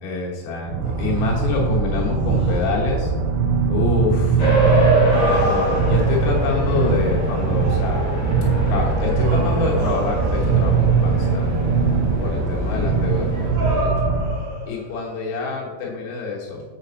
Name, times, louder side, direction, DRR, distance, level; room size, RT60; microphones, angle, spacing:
voice 1, 0.0-3.1 3.7-4.5 5.1-8.1 8.7-11.7 12.2-14.1 14.6-16.6, left 4 dB, 85° left, -3 dB, 3.5 m, -27 dB
sound 1, 0.7-14.3, right 5 dB, 85° right, 2.1 m, -21 dB
sound 2, 0.8-2.8 4.8-6.5 7.4-8.0 8.9-10.9 12.6-15.1, equal, 60° right, 3.2 m, -31 dB
sound 3, 4.4-13.5, right 1 dB, 50° left, 3.1 m, -24 dB
7.8 x 4.2 x 4.0 m, 1.4 s
omnidirectional pair, 4.8 m